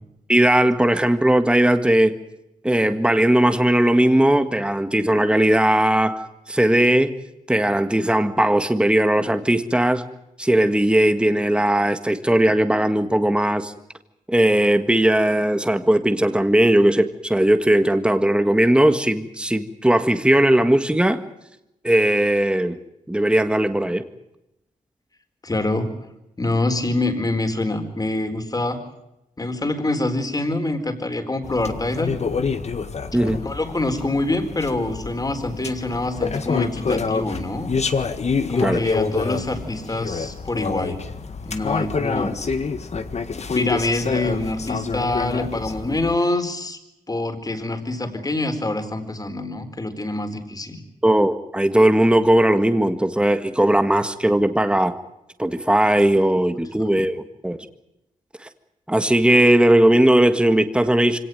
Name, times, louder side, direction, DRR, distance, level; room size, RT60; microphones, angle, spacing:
voice 1, 0.3-2.1 2.6-7.1 7.5-10.0 10.4-13.7 14.3-21.2 21.8-22.8 23.1-24.0 33.1-33.4 38.6-38.8 51.0-54.9 55.4-57.6 58.4-58.5 58.9-61.2, right 1 dB, 5° right, 9 dB, 1.7 m, -18 dB
voice 2, 25.4-25.9 26.4-28.8 29.4-32.1 33.4-37.7 38.5-41.0 41.4-42.4 43.5-46.8 47.1-50.8, left 2 dB, 25° left, 7 dB, 4.3 m, -25 dB
sound 1, 31.4-46.2, left 5 dB, 50° left, 1.7 m, -27 dB
25.0 x 18.0 x 9.2 m, 0.88 s
cardioid pair, 80°, 14 cm